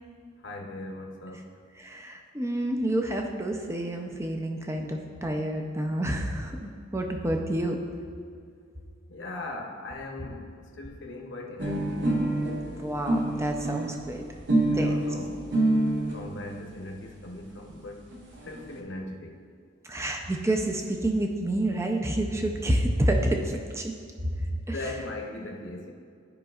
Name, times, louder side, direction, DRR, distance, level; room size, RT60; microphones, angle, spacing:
voice 1, 0.4-1.5 9.1-12.3 14.7-15.9 16.1-18.1 18.4-19.4 24.5-25.9, left 2 dB, 60° left, 1 dB, 0.9 m, -39 dB
voice 2, 1.8-7.8 12.8-14.2 14.5-15.0 19.8-23.9 24.4-24.5, right 1 dB, 15° right, 2 dB, 0.5 m, -29 dB
sound 1, 11.6-16.2 17.0-17.1 17.4-17.5 17.7-17.8 18.0-18.7, right 1 dB, 55° right, 1.1 m, -27 dB
13.0 x 5.2 x 2.4 m, 2.2 s
head